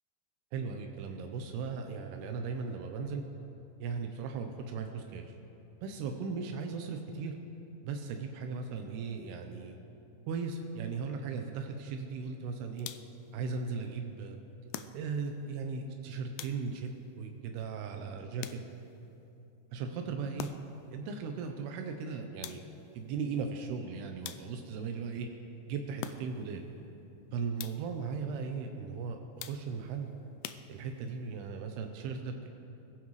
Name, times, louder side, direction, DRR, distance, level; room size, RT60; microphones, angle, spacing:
voice 1, 0.5-3.2 3.8-5.3 5.8-7.4 7.8-9.8 10.3-12.9 13.3-14.4 14.9-16.9 17.2-18.6 19.7-20.5 20.9-22.6 22.9-25.3 25.7-26.6 27.3-30.1 30.7-32.5, right 5 dB, 90° right, 4 dB, 2.9 m, -37 dB
sound 1, 12.8-13.3 14.7-15.4 16.4-17.0 18.4-19.0 20.4-20.9 22.4-22.9 24.2-24.8 26.0-26.6 27.6-28.0 29.4-29.9 30.4-31.2, left 10 dB, 85° left, 2.0 m, -45 dB
24.0 x 16.0 x 3.2 m, 2.8 s
omnidirectional pair, 4.5 m